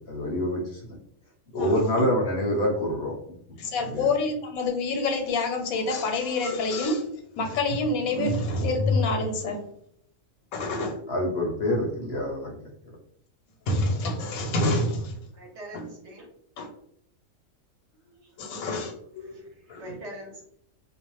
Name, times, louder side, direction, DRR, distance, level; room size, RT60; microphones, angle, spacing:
voice 1, 0.1-0.8 1.5-3.2 3.9-4.1 11.1-12.6, left 1 dB, 65° left, -2 dB, 0.7 m, -26 dB
voice 2, 1.5-2.1 3.6-7.1 7.4-9.6 10.5-11.0 13.6-15.2 15.7-15.8 16.6-16.7 18.4-19.3 19.7-19.8, left 2 dB, 85° left, 4 dB, 1.0 m, -27 dB
voice 3, 15.3-16.3 18.2-18.6 19.2-20.4, right 1 dB, 60° right, 0 dB, 0.9 m, -44 dB
2.4 x 2.0 x 2.9 m, 0.70 s
omnidirectional pair, 1.4 m